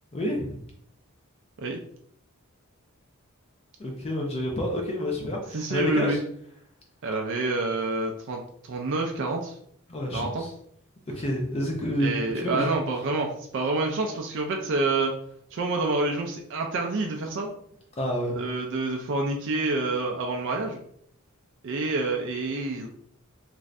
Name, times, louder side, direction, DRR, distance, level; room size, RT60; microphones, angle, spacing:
voice 1, 0.1-0.6 3.8-6.2 9.9-10.5 11.2-12.7 18.0-18.3, left 1 dB, 30° left, 0 dB, 0.5 m, -29 dB
voice 2, 5.5-6.2 7.0-9.5 10.1-10.4 12.0-15.1 15.5-17.5 18.3-20.8 21.6-22.9, right 3 dB, 55° right, 1 dB, 0.4 m, -28 dB
2.6 x 2.4 x 3.2 m, 0.66 s
head